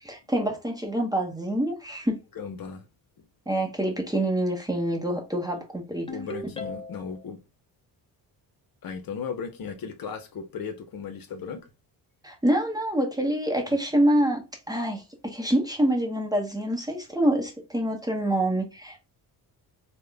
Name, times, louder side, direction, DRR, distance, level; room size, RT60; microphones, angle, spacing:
voice 1, 0.0-2.2 3.5-6.1 12.2-19.1, right 1 dB, 10° right, 0.8 m, -26 dB
voice 2, 2.4-2.9 5.5-5.6 6.1-7.4 8.8-11.6, left 6 dB, 55° left, 0.7 m, -36 dB
Ringtone, 6.1-7.2, left 2 dB, 15° left, 0.5 m, -37 dB
3.6 x 2.2 x 3.3 m
cardioid pair, 120°, 42 cm